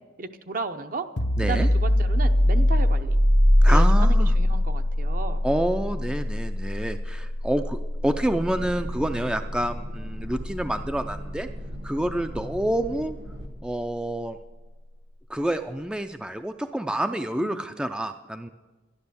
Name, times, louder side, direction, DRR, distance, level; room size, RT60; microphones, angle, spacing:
voice 1, 0.2-1.1 1.4-3.2 3.7-5.4 17.4-17.6, right 4 dB, 50° right, 8 dB, 0.7 m, -34 dB
sound 1, 1.2-12.6, left 1 dB, 80° left, 1.0 m, -23 dB
voice 2, 1.4-1.7 3.6-4.3 5.4-11.5 11.8-13.2 13.6-14.4 15.3-18.5, right 1 dB, 5° right, 8 dB, 0.4 m, -28 dB
sound 2, 8.3-13.5, right 1 dB, 85° right, 1.8 m, -40 dB
12.0 x 11.5 x 6.8 m, 1.2 s
head